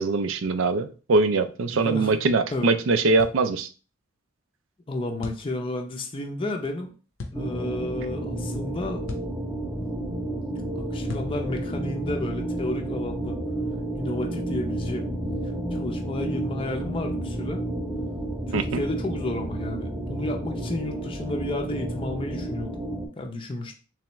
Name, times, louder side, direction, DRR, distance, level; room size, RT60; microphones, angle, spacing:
voice 1, 0.0-3.7 18.5-18.8, right 3 dB, 75° right, 10 dB, 0.4 m, -22 dB
voice 2, 1.7-2.1 2.5-2.7 4.9-6.9 7.3-9.0 10.8-13.4 14.0-15.0 15.7-17.6 18.5-22.7 23.2-23.7, left 1 dB, 25° left, 2 dB, 0.5 m, -32 dB
sound 1, 3.2-3.4 5.2-5.5 7.2-7.4 9.1-9.4 11.1-11.4, left 3 dB, 80° left, 0.7 m, -36 dB
sound 2, 7.3-23.1, right 1 dB, 10° right, 0.7 m, -31 dB
3.4 x 3.3 x 3.0 m, 0.36 s
head